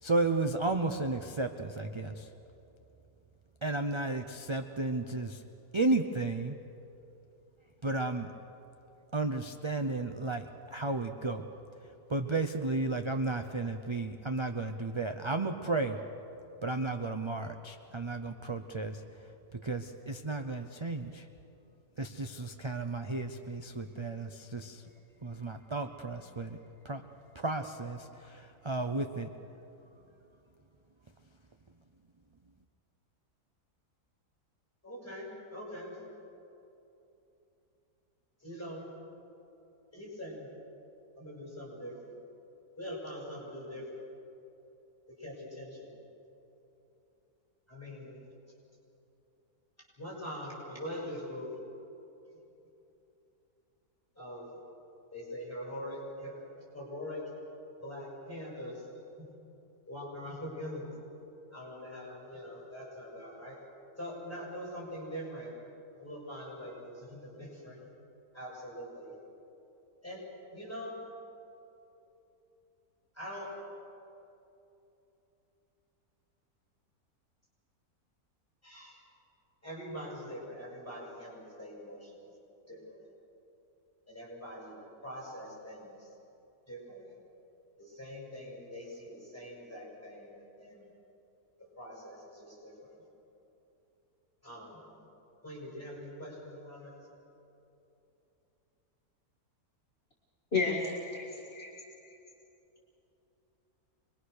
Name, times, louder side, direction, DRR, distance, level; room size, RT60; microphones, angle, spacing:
voice 1, 0.0-2.3 3.6-5.4 5.7-6.6 7.8-8.3 9.1-11.5 11.8-16.0 16.6-21.3 22.0-24.9 25.2-27.1 27.3-29.3, right 2 dB, 35° right, 6 dB, 0.4 m, -33 dB
voice 2, 34.8-35.9 38.4-38.9 39.9-40.4 41.2-42.1 42.8-43.9 45.2-45.9 47.7-48.1 50.0-51.5 54.2-54.5 55.1-56.3 56.7-57.2 57.8-58.8 59.2-59.3 59.9-60.9 61.5-63.6 64.0-65.5 66.0-67.8 68.3-69.1 70.0-70.2 70.5-71.0 73.1-73.5 78.6-79.0 79.6-82.2 82.7-83.0 84.1-84.8 85.0-86.0 86.7-87.1 87.8-90.8 91.8-92.9 94.4-94.8 95.4-96.9, equal, 10° left, -5 dB, 6.5 m, -43 dB
voice 3, 100.5-101.7, left 4 dB, 40° left, -2 dB, 2.4 m, -32 dB
26.5 x 21.5 x 6.6 m, 3.0 s
omnidirectional pair, 1.6 m